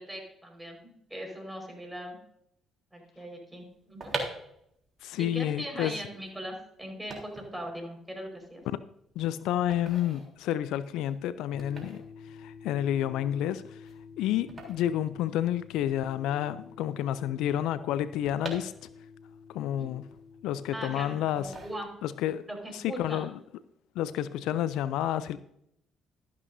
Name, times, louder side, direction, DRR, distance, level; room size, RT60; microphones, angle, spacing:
voice 1, 0.0-2.2 2.9-4.2 5.2-8.6 19.8-19.9 20.7-21.9 22.5-23.3, equal, 10° right, 3 dB, 4.8 m, -40 dB
sound 1, 3.7-15.9 16.1-16.2 16.4-19.3 19.7-20.7 21.3-22.3 22.6-22.9, right 3 dB, 40° right, 3.5 m, -43 dB
voice 2, 5.0-5.9 9.2-13.9 14.2-18.7 19.5-20.0 20.4-21.5 22.0-22.4 22.7-23.3 24.0-25.4, left 11 dB, 70° left, 15 dB, 0.4 m, -30 dB
sound 2, 11.5-21.9, left 5 dB, 50° left, 1.0 m, -50 dB
13.5 x 11.0 x 2.7 m, 0.75 s
hypercardioid pair, 50°, 0 cm